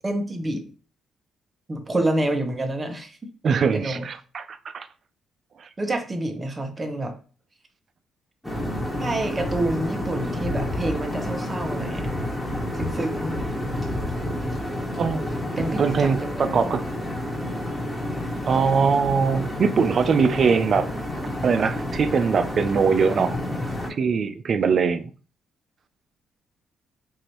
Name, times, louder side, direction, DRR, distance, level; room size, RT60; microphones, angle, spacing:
voice 1, 0.0-0.7 1.7-3.2 3.7-4.1 5.8-7.1 9.0-12.1 12.7-13.4 15.6-16.5, right 1 dB, 25° right, 0.8 m, -28 dB
voice 2, 3.4-4.9 5.6-5.7 15.0-15.2 15.6-16.8 18.5-20.9 21.4-23.4 24.0-25.1, right 5 dB, 50° right, 0.4 m, -22 dB
sound 1, 8.4-23.9, left 1 dB, 5° left, 1.4 m, -29 dB
4.8 x 2.6 x 2.9 m
cardioid pair, 90°, 0 cm